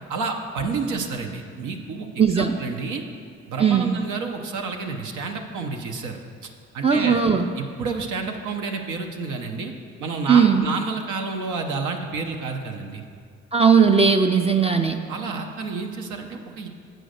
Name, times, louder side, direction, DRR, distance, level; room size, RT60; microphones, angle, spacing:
voice 1, 0.1-3.0 3.5-7.2 7.6-9.7 10.0-13.1 15.1-16.7, right 4 dB, 80° right, 2 dB, 0.8 m, -30 dB
voice 2, 2.2-2.6 3.6-3.9 6.8-7.5 10.3-10.6 13.5-15.0, right 6 dB, 20° right, 5 dB, 0.4 m, -18 dB
7.8 x 5.1 x 6.5 m, 2.2 s
cardioid pair, 90°, 30 cm